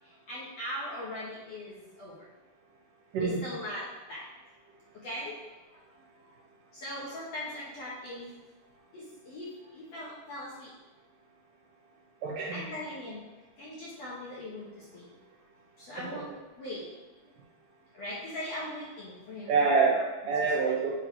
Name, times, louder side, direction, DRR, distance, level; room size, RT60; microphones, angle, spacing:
voice 1, 0.0-2.1 3.2-4.2 5.0-5.4 6.1-6.3 6.7-8.3 8.9-10.7 12.5-13.2 13.6-15.1 15.8-16.3 16.6-16.8 17.9-20.0 20.4-20.7, left 1 dB, 70° left, -7 dB, 1.5 m, -40 dB
voice 2, 3.1-3.4 12.2-12.6 16.0-16.2 19.5-21.1, right 4 dB, 60° right, -4 dB, 2.5 m, -27 dB
8.9 x 3.7 x 4.5 m, 1.2 s
omnidirectional pair, 4.8 m